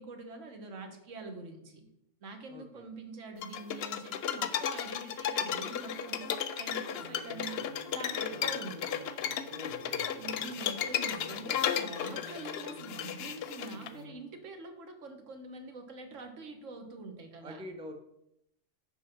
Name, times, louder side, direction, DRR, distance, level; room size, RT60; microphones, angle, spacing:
voice 1, 0.0-1.9 2.2-8.8 10.2-17.6, right 3 dB, 80° right, 5 dB, 1.4 m, -45 dB
voice 2, 2.5-2.9 9.5-10.0 17.4-17.9, equal, 5° right, 5 dB, 0.5 m, -45 dB
sound 1, 3.4-13.9, left 9 dB, 65° left, 0.7 m, -34 dB
sound 2, 7.0-14.1, left 2 dB, 65° right, 2.7 m, -51 dB
6.1 x 4.9 x 5.8 m, 0.80 s
omnidirectional pair, 1.3 m